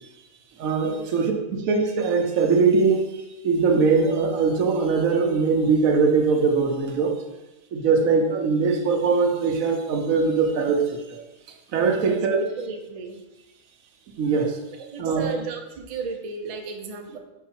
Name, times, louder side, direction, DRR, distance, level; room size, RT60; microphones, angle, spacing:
voice 1, 0.6-7.1 7.7-11.2 11.7-12.4 14.2-14.6 15.0-15.3, right 4 dB, 80° right, 3 dB, 1.2 m, -21 dB
voice 2, 12.0-13.2 14.9-17.2, right 4 dB, 40° right, 3 dB, 0.5 m, -34 dB
4.6 x 4.6 x 4.4 m, 1.0 s
omnidirectional pair, 1.4 m